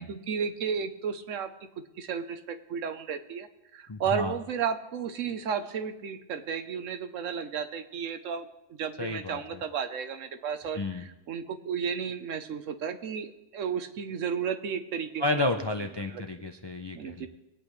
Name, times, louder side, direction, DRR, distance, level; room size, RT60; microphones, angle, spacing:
voice 1, 0.0-1.5 2.0-8.5 8.8-15.7 16.0-16.2 16.9-17.3, right 7 dB, 90° right, 9 dB, 1.2 m, -33 dB
voice 2, 3.9-4.3 9.0-9.6 10.8-11.0 15.2-17.3, left 2 dB, 40° left, 5 dB, 0.4 m, -31 dB
22.0 x 8.6 x 3.2 m, 0.95 s
omnidirectional pair, 1.3 m